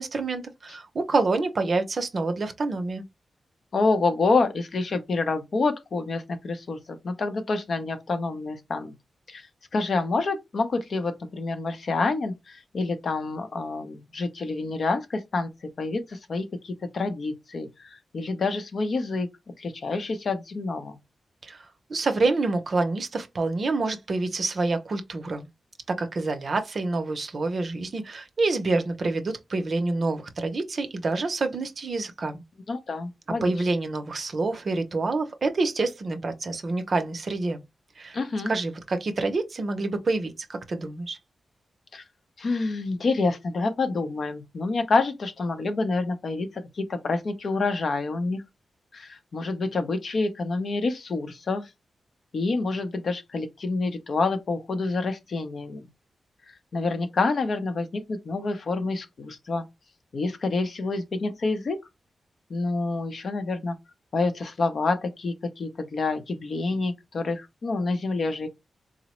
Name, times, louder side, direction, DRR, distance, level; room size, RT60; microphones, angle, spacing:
voice 1, 0.0-3.0 21.4-21.6 21.9-25.5 25.9-32.4 33.4-37.6 38.0-38.2 38.5-41.2, right 3 dB, 50° right, 0.6 m, -27 dB
voice 2, 3.7-8.9 9.3-9.5 9.7-15.5 15.8-19.3 19.6-21.0 32.7-33.5 38.1-38.5 41.9-42.0 42.4-48.4 48.9-51.7 52.3-55.9 56.5-59.6 60.1-61.8 62.5-63.8 64.1-68.5, left 3 dB, 60° left, 0.6 m, -27 dB
3.8 x 2.0 x 3.0 m
wide cardioid pair, 105°, 0 cm